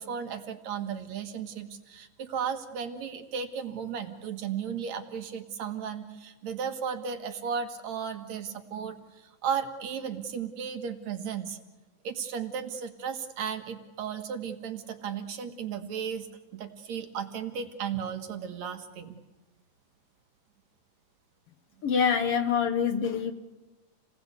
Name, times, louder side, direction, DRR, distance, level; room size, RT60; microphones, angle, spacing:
voice 1, 0.0-11.6 12.0-16.3 16.5-19.2, right 7 dB, 65° right, 2.8 m, -35 dB
voice 2, 21.8-23.3, left 7 dB, 60° left, 1.8 m, -25 dB
29.0 x 19.5 x 8.2 m
omnidirectional pair, 3.5 m